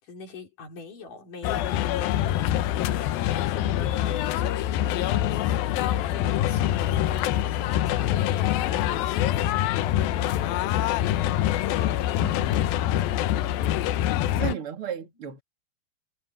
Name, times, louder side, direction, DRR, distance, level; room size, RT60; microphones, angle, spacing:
voice 1, 0.0-11.4 14.1-14.5 15.0-15.1, left 4 dB, 65° left, 6.3 m, -44 dB
sound 1, 1.4-14.5, left 12 dB, 90° left, 2.7 m, -25 dB
sound 2, 5.0-10.2, right 1 dB, 10° right, 5.7 m, -53 dB
voice 2, 12.2-12.7 14.4-15.4, right 9 dB, 40° right, 3.4 m, -34 dB
omnidirectional pair, 4.0 m